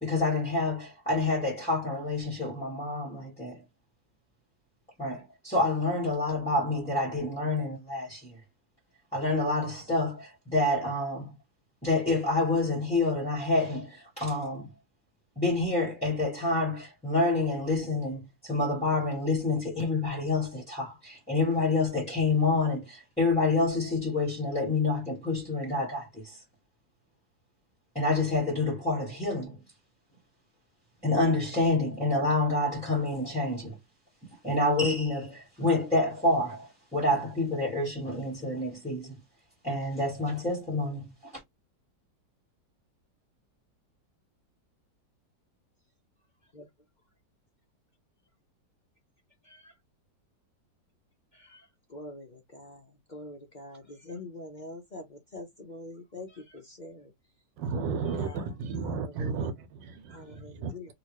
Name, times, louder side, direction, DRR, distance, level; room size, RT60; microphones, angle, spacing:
voice 1, 0.0-3.6 5.0-8.4 9.1-11.3 11.8-14.7 15.4-26.4 27.9-29.6 31.0-33.8 34.4-39.1 39.6-41.4, left 2 dB, 5° left, 1.3 m, -28 dB
voice 2, 51.9-52.8 53.1-57.1 57.7-58.5 58.8-59.4 60.1-60.9, left 2 dB, 50° left, 0.5 m, -44 dB
voice 3, 57.6-60.3 60.6-60.7, right 5 dB, 80° right, 1.5 m, -33 dB
3.0 x 2.9 x 3.1 m
omnidirectional pair, 2.0 m